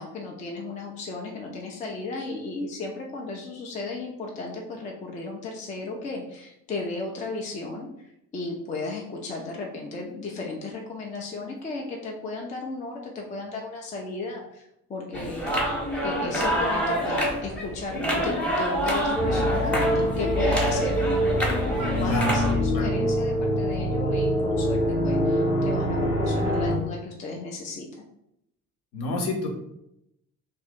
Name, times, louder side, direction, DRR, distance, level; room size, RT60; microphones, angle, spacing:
voice 1, 0.0-7.9 8.3-28.1, left 3 dB, 20° left, 0 dB, 0.4 m, -35 dB
sound 1, 15.1-22.5, equal, 5° left, 0.8 m, -27 dB
sound 2, 19.1-26.7, equal, 85° left, 0.9 m, -25 dB
voice 2, 28.9-29.6, left 2 dB, 45° left, 2 dB, 0.8 m, -28 dB
2.6 x 2.5 x 3.5 m, 0.81 s
figure-of-eight pair, 55°, 44 cm